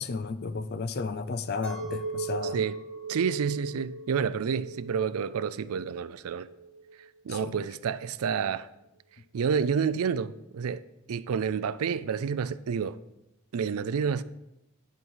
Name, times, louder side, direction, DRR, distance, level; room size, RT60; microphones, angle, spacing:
voice 1, 0.0-2.6 7.3-7.7, left 4 dB, 45° left, 0.5 m, -33 dB
Chink clink, 1.6-7.1, right 3 dB, 5° left, 2.3 m, -38 dB
voice 2, 3.1-6.5 7.2-8.7 9.3-10.8 11.1-13.0 13.5-14.2, right 6 dB, 80° right, 0.4 m, -29 dB
10.5 x 4.7 x 5.6 m
head